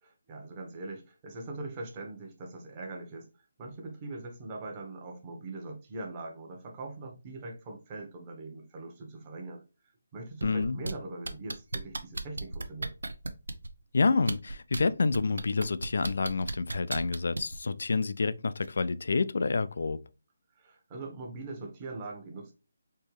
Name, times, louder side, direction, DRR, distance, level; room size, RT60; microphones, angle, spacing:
voice 1, 0.0-3.3 3.6-9.6 10.1-12.9 20.6-22.5, right 2 dB, 25° right, 1.1 m, -41 dB
voice 2, 10.4-10.8 13.9-20.0, left 4 dB, 65° left, 0.4 m, -28 dB
sound 1, 10.4-10.9 11.2-13.7 14.2-14.8 15.1-17.6 18.6-18.7, right 2 dB, 85° right, 0.7 m, -34 dB
4.4 x 3.0 x 3.2 m
hypercardioid pair, 165°, 0 cm